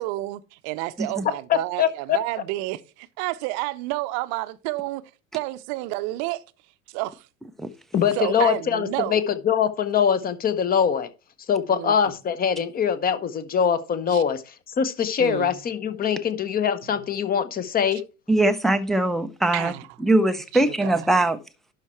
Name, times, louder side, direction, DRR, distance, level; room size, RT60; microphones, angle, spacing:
voice 1, 0.0-5.0 5.3-6.4 6.9-7.3 8.1-9.2 11.7-11.9 14.1-14.2 15.2-15.6 17.9-18.0 19.5-19.8 20.5-21.0, right 19 dB, 40° right, 0.7 m, -30 dB
voice 2, 1.5-2.2 7.9-11.1 11.5-18.0, left 8 dB, 20° left, 0.8 m, -23 dB
voice 3, 18.3-19.7 20.0-21.4, right 2 dB, ahead, 0.4 m, -21 dB
11.5 x 4.5 x 4.3 m
figure-of-eight pair, 80°, 41 cm